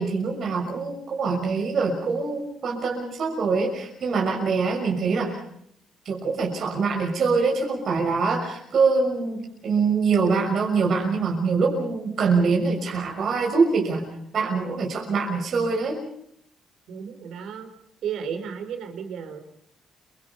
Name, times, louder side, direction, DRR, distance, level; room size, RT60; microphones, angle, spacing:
voice 1, 0.0-5.4 6.0-14.1 14.3-16.0, right 4 dB, 60° right, 0 dB, 6.3 m, -24 dB
voice 2, 16.9-17.7 18.0-19.4, right 7 dB, 80° right, 7 dB, 4.7 m, -33 dB
28.0 x 24.5 x 5.6 m, 0.70 s
cardioid pair, 90°, 0 cm